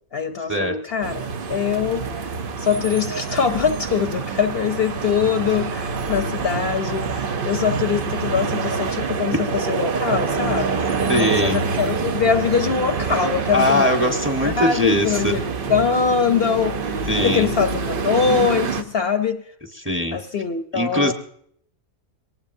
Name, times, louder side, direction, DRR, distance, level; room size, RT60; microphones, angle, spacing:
voice 1, 0.1-10.9 11.2-14.1 14.4-17.0 17.2-19.4 20.1-21.1, left 6 dB, 55° left, 7 dB, 0.9 m, -23 dB
sound 1, 1.0-18.8, right 5 dB, 50° right, 0.9 m, -26 dB
voice 2, 11.1-11.6 13.5-15.4 17.1-17.5 19.8-20.2 20.7-21.1, left 1 dB, 10° right, 3 dB, 1.1 m, -20 dB
23.0 x 19.0 x 2.6 m, 0.69 s
omnidirectional pair, 1.3 m